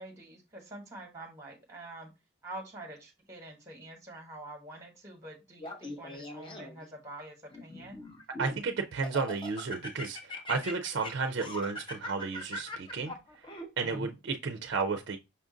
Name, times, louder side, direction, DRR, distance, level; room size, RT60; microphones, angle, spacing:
voice 1, 0.0-2.1 2.4-8.0, right 1 dB, 15° right, 1.0 m, -46 dB
Laughter, 5.6-6.9 7.5-8.6 9.0-14.1, left 1 dB, 25° left, 0.7 m, -41 dB
voice 2, 8.4-13.1 13.8-15.2, right 4 dB, 55° right, 0.4 m, -33 dB
5.6 x 2.5 x 3.7 m
head